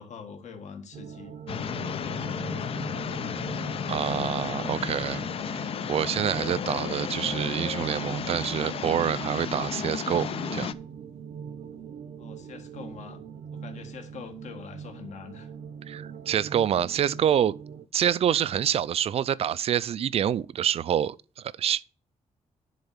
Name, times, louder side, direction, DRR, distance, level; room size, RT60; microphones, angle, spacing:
voice 1, 0.0-3.0 12.2-13.2 13.5-15.5, left 6 dB, 65° left, 1.6 m, -44 dB
sound 1, 0.9-17.9, right 7 dB, 75° right, 0.8 m, -41 dB
sound 2, 1.5-10.7, left 8 dB, 50° left, 0.5 m, -33 dB
voice 2, 3.9-5.2 5.6-10.7 15.9-17.5 17.9-21.8, right 9 dB, 50° right, 0.4 m, -27 dB
10.5 x 4.1 x 7.1 m
wide cardioid pair, 175°, 13 cm